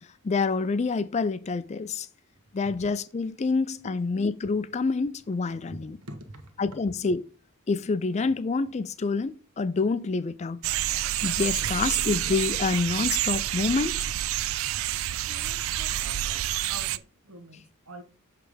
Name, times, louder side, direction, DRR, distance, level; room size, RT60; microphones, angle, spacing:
voice 1, 0.2-2.1 2.5-6.0 6.6-7.2 7.7-10.6 11.2-14.1, left 4 dB, 30° left, 0.4 m, -27 dB
voice 2, 5.7-6.5 11.7-12.1 15.3-18.0, right 1 dB, 80° right, 1.3 m, -45 dB
sound 1, 10.6-17.0, right 13 dB, 60° right, 0.3 m, -28 dB
7.0 x 3.3 x 5.0 m
head